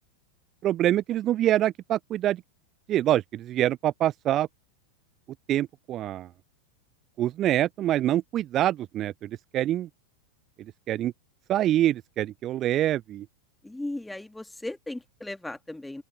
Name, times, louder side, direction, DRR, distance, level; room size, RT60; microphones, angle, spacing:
voice 1, 0.6-2.4 2.9-4.5 5.5-6.3 7.2-9.9 10.9-11.1 11.5-13.3, right 13 dB, 30° right, 0.7 m, -25 dB
voice 2, 13.6-16.0, left 1 dB, 5° left, 2.6 m, -37 dB
open air
figure-of-eight pair, 90°, 0 cm